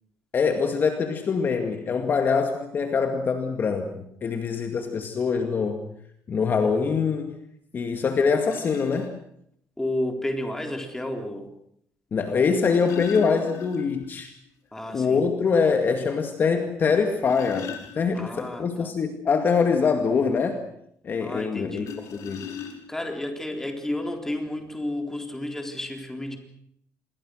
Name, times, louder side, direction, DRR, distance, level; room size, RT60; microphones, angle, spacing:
voice 1, 0.3-5.8 6.3-7.3 7.7-9.2 12.1-14.3 14.9-17.7 18.0-20.6 21.0-22.5, left 5 dB, 35° left, 6 dB, 2.2 m, -24 dB
sound 1, 7.8-7.9 8.4-9.1 10.5-10.6 12.4-14.1 14.4-14.5 15.0-15.1 15.6-15.7 16.9-18.4 21.8-23.1 24.0-24.1 24.4-24.7, left 8 dB, 75° left, 5.4 m, -39 dB
voice 2, 9.8-11.5 14.7-15.2 18.1-18.9 21.2-21.9 22.9-26.4, left 1 dB, 10° left, 4 dB, 3.8 m, -31 dB
27.0 x 22.0 x 6.5 m, 0.71 s
cardioid pair, 145°, 6 cm